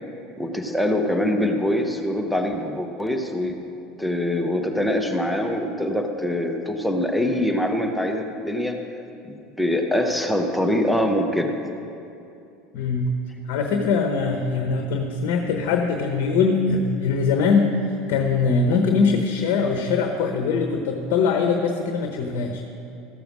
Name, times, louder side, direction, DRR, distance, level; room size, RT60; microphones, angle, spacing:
voice 1, 0.4-3.6 4.0-8.8 9.3-11.5, left 1 dB, 5° left, 3 dB, 1.1 m, -24 dB
voice 2, 12.7-13.1 13.5-17.7 18.1-22.6, left 5 dB, 65° left, 4 dB, 0.9 m, -22 dB
14.0 x 7.0 x 6.1 m, 2.7 s
hypercardioid pair, 80°, 0 cm